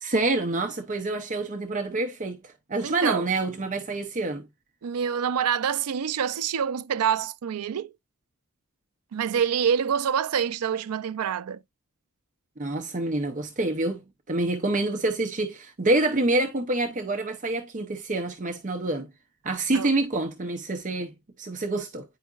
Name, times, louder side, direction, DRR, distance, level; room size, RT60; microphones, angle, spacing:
voice 1, 0.0-4.5 12.6-19.1 19.4-21.1 21.4-22.0, right 2 dB, 35° right, 0.7 m, -27 dB
voice 2, 2.8-3.2 4.8-7.9 9.1-11.6 19.7-19.9, right 8 dB, 80° right, 0.4 m, -26 dB
9.3 x 4.7 x 2.4 m
head